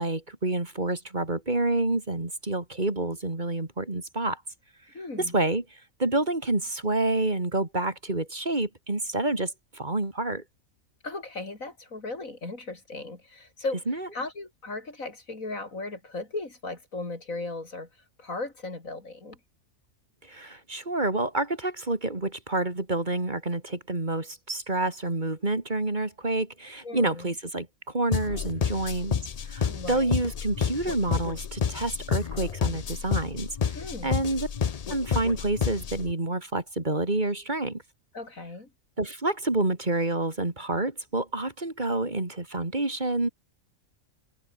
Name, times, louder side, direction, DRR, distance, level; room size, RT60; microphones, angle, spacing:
voice 1, 0.0-4.4 5.2-5.6 6.0-10.4 13.9-14.1 20.3-33.7 34.0-34.5 34.9-37.8 39.0-43.3, right 2 dB, 35° right, 3.0 m, -28 dB
voice 2, 4.9-5.3 11.0-13.8 14.1-17.9 18.2-19.4 26.8-27.3 29.7-30.2 33.7-34.2 38.1-38.7, left 3 dB, 90° left, 4.8 m, -36 dB
sound 1, 28.1-36.1, left 7 dB, 40° left, 0.5 m, -30 dB
omnidirectional pair, 1.4 m